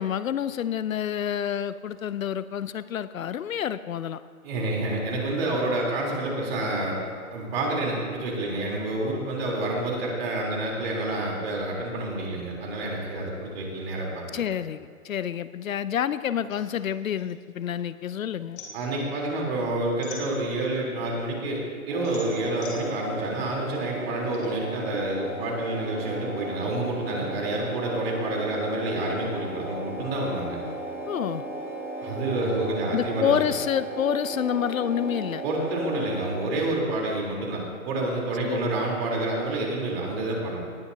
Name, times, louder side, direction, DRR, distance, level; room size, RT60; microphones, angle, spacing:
voice 1, 0.0-4.2 14.3-18.6 31.1-31.4 32.9-35.4 38.4-38.9, left 9 dB, 70° left, 15 dB, 0.6 m, -28 dB
voice 2, 4.4-7.0 7.3-14.4 18.7-30.6 32.0-33.3 35.4-40.6, right 2 dB, 45° right, -2 dB, 3.8 m, -28 dB
sound 1, 16.5-18.0 18.3-20.8 21.3-24.5, left 4 dB, 35° left, 3.1 m, -45 dB
sound 2, 21.9-36.2, right 2 dB, 5° right, 0.6 m, -36 dB
19.0 x 12.0 x 2.8 m, 2.1 s
hypercardioid pair, 140°, 42 cm